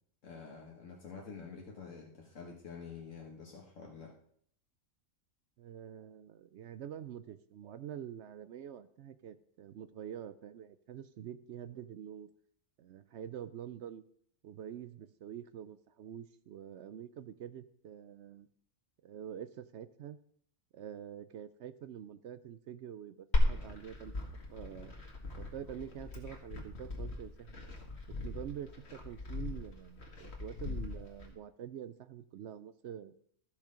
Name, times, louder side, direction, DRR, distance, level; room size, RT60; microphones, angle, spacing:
voice 1, 0.2-4.2, left 5 dB, 70° left, -1 dB, 1.7 m, -48 dB
voice 2, 5.6-12.3 12.8-14.0 14.4-18.5 19.0-20.2 20.7-24.1 24.5-24.9 25.4-27.6 28.1-33.1, right 9 dB, 65° right, 13 dB, 0.8 m, -46 dB
Glass, 23.3-31.3, left 1 dB, 50° left, 2.1 m, -36 dB
13.5 x 6.5 x 5.0 m, 0.64 s
omnidirectional pair, 1.4 m